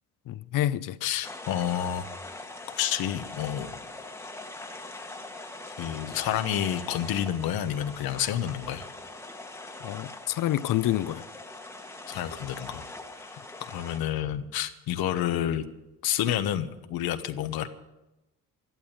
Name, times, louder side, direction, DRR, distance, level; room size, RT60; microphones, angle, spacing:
voice 1, 0.3-1.0 9.8-11.3, left 13 dB, 65° left, 0.7 m, -28 dB
voice 2, 1.0-2.1 2.8-3.7 5.8-8.9 12.1-12.8 13.2-15.6 16.0-17.7, left 10 dB, 85° left, 1.2 m, -29 dB
sound 1, 1.2-14.0, left 2 dB, 5° left, 1.2 m, -42 dB
13.0 x 11.5 x 8.9 m
cardioid pair, 135°, 36 cm